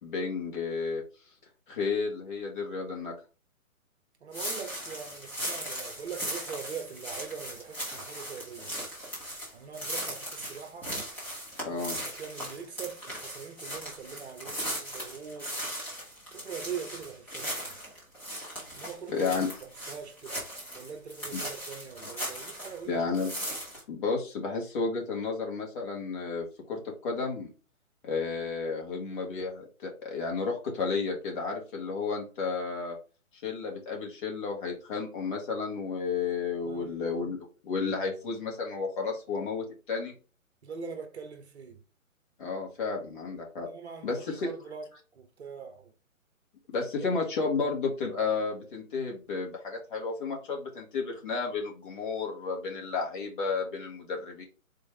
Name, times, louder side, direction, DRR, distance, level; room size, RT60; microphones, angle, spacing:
voice 1, 0.0-1.0 1.7-3.1 11.6-12.0 19.1-19.5 21.3-21.4 22.9-23.3 23.9-27.5 28.0-33.0 33.4-37.4 37.6-40.1 42.4-43.7 44.0-44.5 46.7-54.4, left 4 dB, 35° left, 1.5 m, -32 dB
voice 2, 4.2-8.7 9.5-10.9 11.7-15.6 16.3-17.8 18.8-19.2 19.6-20.4 20.7-23.0 36.6-37.2 40.6-41.8 43.6-45.9, right 6 dB, 50° right, 0.9 m, -42 dB
sound 1, 4.3-22.8 23.1-23.8, equal, 5° left, 0.7 m, -38 dB
4.2 x 3.3 x 3.2 m
figure-of-eight pair, 135°, 42 cm